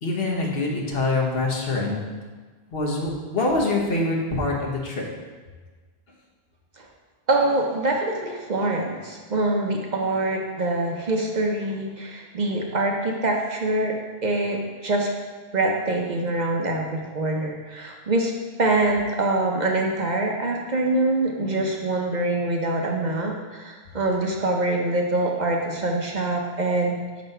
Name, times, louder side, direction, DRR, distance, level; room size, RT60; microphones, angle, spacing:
voice 1, 0.0-2.0 2.7-5.0, left 2 dB, 65° left, -2 dB, 1.3 m, -25 dB
voice 2, 7.3-13.9 14.2-15.1 15.5-18.3 18.6-27.2, right 2 dB, 50° right, 1 dB, 0.7 m, -24 dB
5.5 x 4.1 x 5.4 m, 1.4 s
omnidirectional pair, 1.1 m